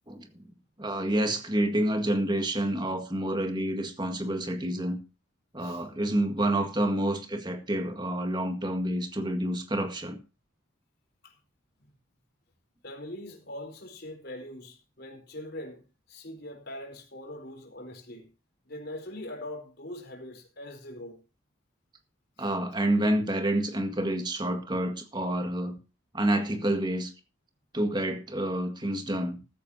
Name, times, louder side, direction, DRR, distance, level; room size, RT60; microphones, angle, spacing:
voice 1, 0.8-5.0 5.5-10.2 22.4-25.8 26.1-27.1 27.7-29.4, right 1 dB, 20° right, 1.8 m, -28 dB
voice 2, 12.8-18.3 18.7-21.2 22.4-22.5, left 1 dB, 50° left, 4.4 m, -42 dB
15.0 x 14.0 x 2.8 m
head